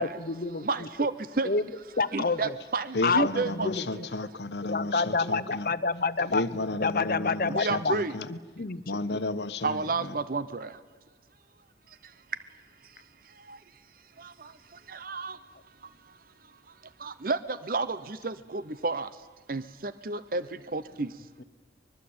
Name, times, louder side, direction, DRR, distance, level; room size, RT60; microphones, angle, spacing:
voice 1, 0.0-0.9 1.4-1.7 2.0-2.5 3.0-4.1 4.6-6.5 6.8-7.9 8.3-8.8 9.1-9.2, left 4 dB, 50° left, 15 dB, 0.9 m, -28 dB
voice 2, 0.6-1.5 2.1-3.7 4.0-4.1 7.5-8.1 9.6-10.8 11.9-12.4 12.8-13.6 14.2-15.4 15.8-16.2 16.4-19.2 19.5-21.3, right 3 dB, 55° right, 14 dB, 0.8 m, -32 dB
voice 3, 2.9-5.7 6.3-8.3 8.9-10.1, left 2 dB, 70° left, 12 dB, 1.1 m, -33 dB
24.5 x 21.5 x 8.8 m, 1.3 s
head